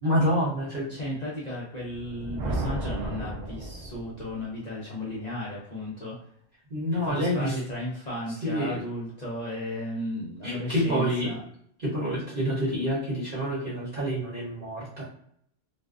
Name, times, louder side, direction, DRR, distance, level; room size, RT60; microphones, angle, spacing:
voice 1, 0.0-0.9 6.7-7.6 8.4-8.8 10.4-11.3 11.8-15.0, equal, 50° right, -8 dB, 0.9 m, -27 dB
voice 2, 0.9-6.2 7.0-11.4, left 1 dB, 50° left, -6 dB, 0.5 m, -35 dB
Thunder, 1.9-4.4, right 2 dB, 70° right, 0.4 m, -34 dB
2.4 x 2.1 x 2.4 m, 0.67 s
omnidirectional pair, 1.3 m